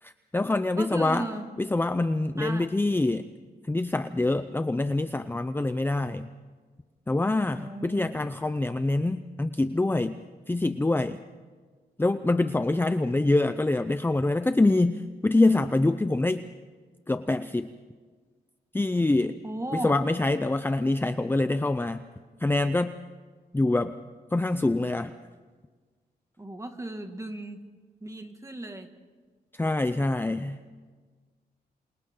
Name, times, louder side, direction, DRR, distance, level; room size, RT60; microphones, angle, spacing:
voice 1, 0.0-1.3 1.6-3.3 3.6-6.3 7.1-11.2 12.0-16.5 17.1-17.7 18.7-19.4 19.7-22.0 22.4-22.9 23.5-23.9 24.3-25.1 29.5-30.6, left 2 dB, 10° left, 10 dB, 0.6 m, -25 dB
voice 2, 0.8-1.5 2.4-2.8 7.5-8.1 19.4-19.9 26.4-27.6 28.0-28.9, right 1 dB, 15° right, 5 dB, 2.1 m, -36 dB
28.0 x 27.5 x 3.9 m, 1.4 s
cardioid pair, 100°, 17 cm